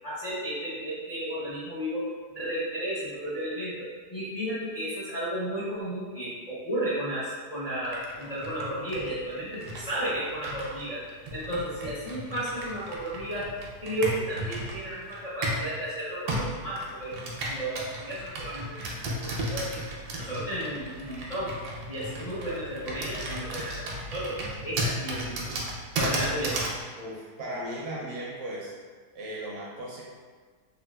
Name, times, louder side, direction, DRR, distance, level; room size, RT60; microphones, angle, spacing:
voice 1, 0.0-2.1 2.3-11.0 11.3-13.5 13.8-19.7 20.2-21.5 21.9-23.8 24.1-24.4 24.6-25.6 25.9-26.5, right 1 dB, 60° left, -11 dB, 0.4 m, -33 dB
Computer keyboard, 7.8-15.7 16.3-26.8, right 1 dB, 85° right, 1.1 m, -35 dB
voice 2, 27.0-28.7 29.1-30.0, right 1 dB, 70° right, -5 dB, 0.8 m, -36 dB
3.6 x 2.3 x 2.2 m, 1.5 s
omnidirectional pair, 1.7 m